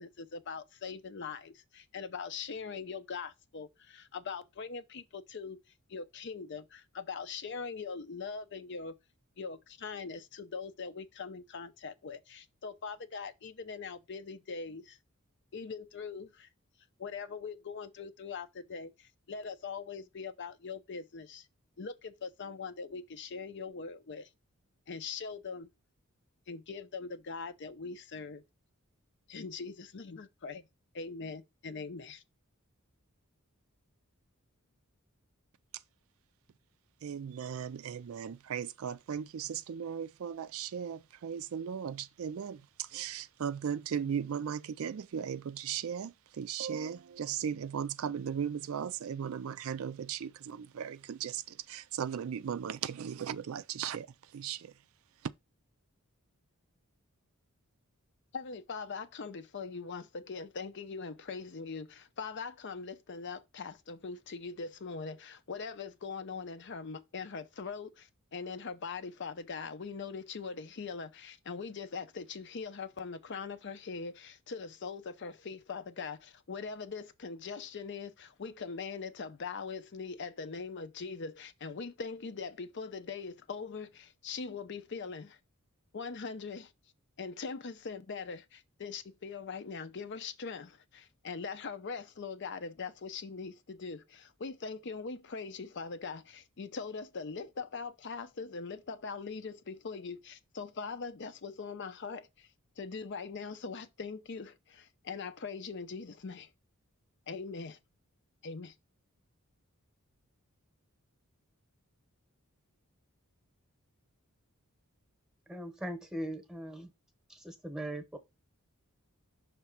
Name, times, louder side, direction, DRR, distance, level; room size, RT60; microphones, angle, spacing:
voice 1, 0.0-5.6 5.9-8.9 9.4-15.0 15.5-16.5 17.0-21.5 21.8-24.3 24.9-25.7 26.5-28.4 29.3-30.6 30.9-32.2 58.3-85.4 85.9-86.7 87.2-102.5 102.8-106.5 107.3-107.8 108.4-108.7, left 5 dB, 55° left, 0.6 m, -41 dB
voice 2, 37.0-42.6 42.9-51.4 51.7-54.1 54.3-54.7, right 8 dB, 70° right, 0.4 m, -37 dB
voice 3, 115.5-116.9 117.3-118.2, right 1 dB, 5° right, 1.0 m, -40 dB
5.9 x 3.3 x 5.7 m
head